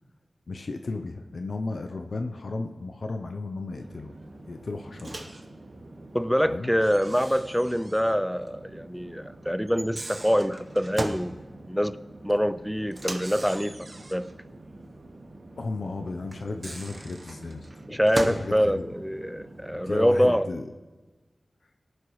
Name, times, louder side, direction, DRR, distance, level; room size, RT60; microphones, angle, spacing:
voice 1, 0.5-4.1 4.4-5.3 6.4-6.7 15.6-17.7 18.1-18.9 19.8-20.6, left 3 dB, 65° left, 0.6 m, -34 dB
Conversation / Chatter / Fixed-wing aircraft airplane, 3.7-20.4, right 2 dB, 55° right, 1.9 m, -47 dB
Microwave oven, 5.0-5.4 6.8-8.2 8.5-8.6 9.7-11.3 12.9-14.3 16.3-18.5, right 2 dB, 40° right, 0.9 m, -37 dB
voice 2, 6.1-11.4 11.7-12.0 12.2-14.3 17.9-20.5, equal, ahead, 0.4 m, -25 dB
18.5 x 11.0 x 3.1 m
wide cardioid pair, 80°, 0 cm